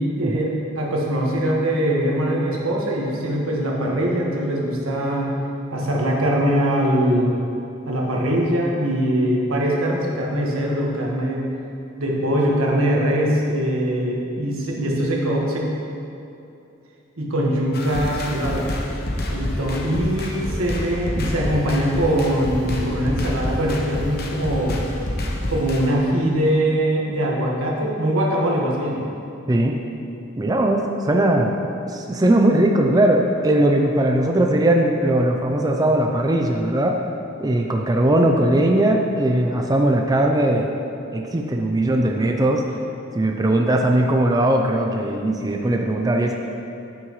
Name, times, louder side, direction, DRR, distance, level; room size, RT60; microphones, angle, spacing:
voice 1, 0.0-5.3 5.7-7.3 7.8-11.4 12.0-15.7 17.2-18.7 19.3-24.8 25.5-29.0, right 1 dB, 90° right, -2 dB, 1.6 m, -22 dB
sound 1, 17.7-25.9, left 1 dB, 50° left, 0.9 m, -28 dB
voice 2, 29.5-29.8 30.4-31.6 31.9-37.0 37.4-40.7 41.1-42.7 43.1-46.3, right 1 dB, 20° right, 2 dB, 0.4 m, -19 dB
9.5 x 9.1 x 3.1 m, 2.7 s
head